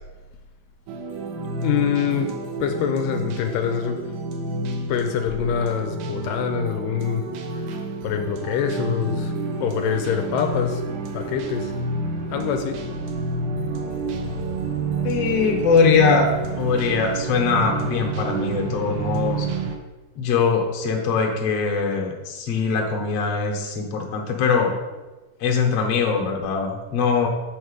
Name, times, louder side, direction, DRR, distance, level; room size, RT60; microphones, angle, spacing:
sound 1, 0.9-19.8, right 3 dB, 90° right, 2.6 m, -29 dB
voice 1, 1.6-2.3 2.6-4.0 4.9-7.2 7.5-7.8 8.0-9.3 9.6-10.8 11.1-11.7 12.3-12.8, left 7 dB, 85° left, 5 dB, 2.2 m, -25 dB
sound 2, 9.2-19.8, right 4 dB, 70° right, 2.1 m, -36 dB
voice 2, 15.0-16.3 16.6-19.5 20.2-24.7 25.4-27.3, left 5 dB, 60° left, 1 dB, 1.9 m, -22 dB
8.3 x 4.6 x 6.4 m, 1.2 s
omnidirectional pair, 4.0 m